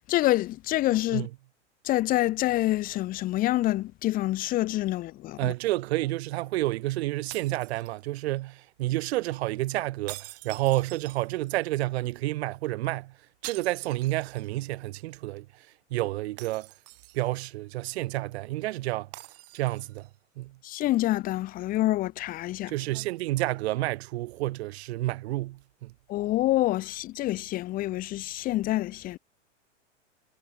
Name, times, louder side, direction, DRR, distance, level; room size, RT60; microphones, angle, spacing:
voice 1, 0.1-1.3 1.8-5.5 20.6-22.7 26.1-29.2, left 16 dB, 25° left, 0.6 m, -27 dB
voice 2, 5.4-13.1 13.4-15.5 15.9-16.7 17.1-19.1 19.5-20.1 20.4-20.6 22.7-25.9, right 18 dB, 60° right, 1.1 m, -30 dB
sound 1, 7.3-8.4 10.1-11.6 13.4-14.7 15.0-15.1 16.4-17.5 19.1-20.1, right 20 dB, 40° right, 6.2 m, -45 dB
hypercardioid pair, 115°, 37 cm